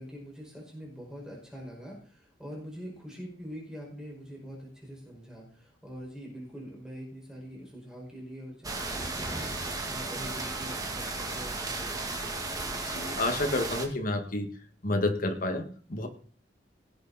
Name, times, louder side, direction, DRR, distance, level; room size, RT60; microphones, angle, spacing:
voice 1, 0.0-12.7, equal, 5° right, -3 dB, 5.6 m, -44 dB
sound 1, 8.6-13.9, right 3 dB, 20° right, 2.0 m, -34 dB
voice 2, 12.9-14.5 14.8-16.1, left 2 dB, 50° left, 5 dB, 2.0 m, -30 dB
18.5 x 8.4 x 4.3 m, 0.42 s
head